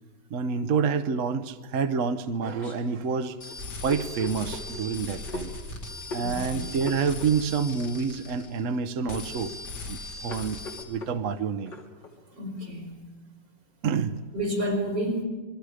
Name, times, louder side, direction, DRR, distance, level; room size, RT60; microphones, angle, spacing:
voice 1, 0.3-3.4 3.8-5.5 6.1-9.5 9.9-10.6 10.9-11.7 13.8-14.2, right 5 dB, 55° right, 9 dB, 1.1 m, -28 dB
sound 1, 1.8-12.2, left 2 dB, 85° left, 3.8 m, -42 dB
sound 2, 3.4-8.8 9.1-10.8, left 2 dB, 70° left, 2.7 m, -39 dB
voice 2, 6.2-6.7 12.3-13.0 14.3-15.2, equal, 85° right, 0 dB, 4.7 m, -30 dB
27.5 x 22.0 x 5.0 m, 1.4 s
omnidirectional pair, 1.9 m